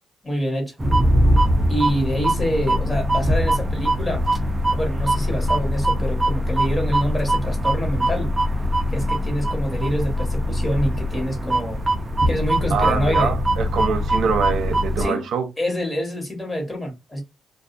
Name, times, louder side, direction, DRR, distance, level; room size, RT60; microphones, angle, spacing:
voice 1, 0.2-0.7 1.7-4.2 4.7-8.3 8.9-11.8 12.3-13.3 15.0-15.3 15.6-17.2, equal, 20° left, 1.3 m, -26 dB
sound 1, 0.8-15.0, equal, 20° right, 0.5 m, -22 dB
voice 2, 12.7-15.5, right 5 dB, 70° right, 0.6 m, -24 dB
2.4 x 2.3 x 2.5 m
cardioid pair, 90°, 0 cm